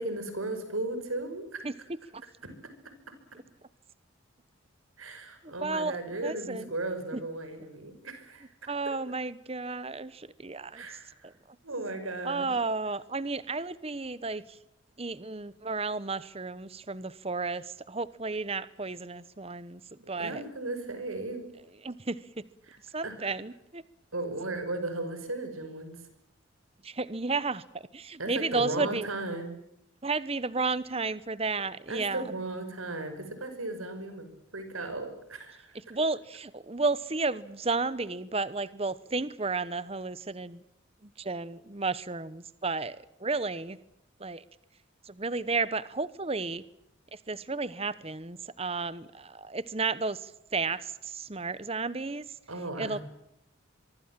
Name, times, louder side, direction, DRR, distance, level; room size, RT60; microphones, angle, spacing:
voice 1, 0.0-1.7 2.4-2.6 3.1-3.2 5.0-8.7 10.7-11.3 11.6-12.5 20.2-21.5 22.7-22.8 23.0-23.2 24.1-26.0 28.2-29.5 31.9-35.8 52.5-53.0, right 2 dB, 85° right, 9 dB, 5.8 m, -36 dB
voice 2, 5.4-6.7 7.1-7.2 8.7-10.9 11.2-11.3 12.2-14.6 15.0-20.4 21.8-22.2 22.9-23.8 26.8-29.1 30.0-32.3 35.9-40.6 41.0-43.8 44.2-44.4 45.0-46.6 47.1-52.2 52.8-53.0, right 3 dB, 30° right, 16 dB, 1.0 m, -33 dB
24.0 x 24.0 x 7.5 m, 0.79 s
head